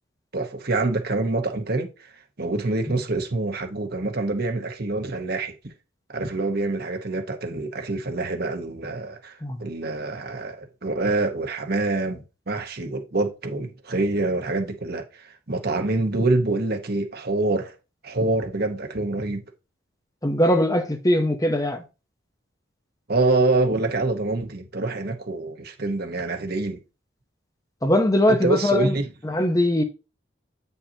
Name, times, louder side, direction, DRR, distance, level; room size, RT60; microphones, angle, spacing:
voice 1, 0.3-2.1 2.4-5.5 6.1-17.7 18.0-19.4 23.1-26.8 28.3-29.1, right 2 dB, 50° right, 1.1 m, -26 dB
voice 2, 20.2-21.8 27.8-29.0 29.2-29.8, left 1 dB, 15° left, 0.8 m, -21 dB
8.7 x 5.5 x 2.9 m
head